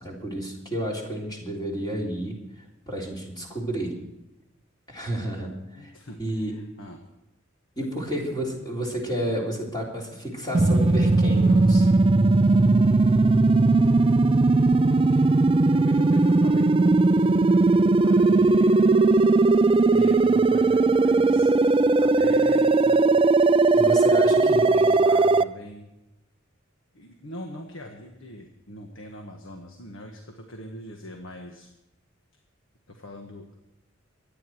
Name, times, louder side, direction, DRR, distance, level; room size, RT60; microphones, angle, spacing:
voice 1, 0.0-2.4 2.9-3.9 4.9-5.9 6.2-6.5 7.8-11.9 23.7-24.8, right 1 dB, 20° left, -2 dB, 3.5 m, -31 dB
voice 2, 5.7-7.0 7.8-8.0 14.8-16.9 18.0-19.1 19.8-21.5 22.0-23.0 24.0-25.9 26.9-31.7 32.9-33.5, left 1 dB, 70° left, 3 dB, 1.5 m, -41 dB
sound 1, 10.5-25.4, right 3 dB, 25° right, 0.4 m, -18 dB
24.0 x 9.6 x 4.6 m, 0.96 s
head